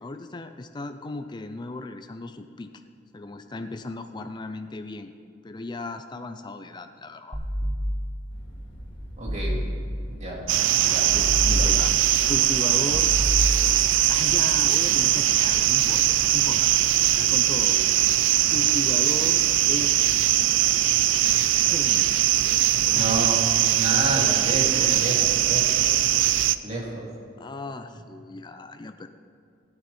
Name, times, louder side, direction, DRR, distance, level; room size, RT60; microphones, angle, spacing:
voice 1, 0.0-2.7 3.1-5.1 5.4-7.4 11.1-11.9 12.3-13.1 14.1-17.8 18.5-20.0 21.7-22.2 22.9-23.2 24.7-25.2 27.4-29.1, left 2 dB, 25° left, 7 dB, 0.5 m, -36 dB
sound 1, 7.3-8.3 9.3-10.2 11.1-12.2 12.9-14.0, equal, 10° right, 1.5 m, -27 dB
sound 2, 8.3-17.2, equal, 65° left, 2.4 m, -47 dB
voice 2, 9.2-9.6 10.2-10.4 10.8-11.1 11.5-11.8 23.0-23.4 23.7-25.2 25.4-25.9 26.6-27.1, right 1 dB, 40° right, -3 dB, 2.8 m, -30 dB
sound 3, 10.5-26.6, right 13 dB, 75° right, 0.4 m, -21 dB
16.0 x 9.6 x 4.3 m, 2.5 s
head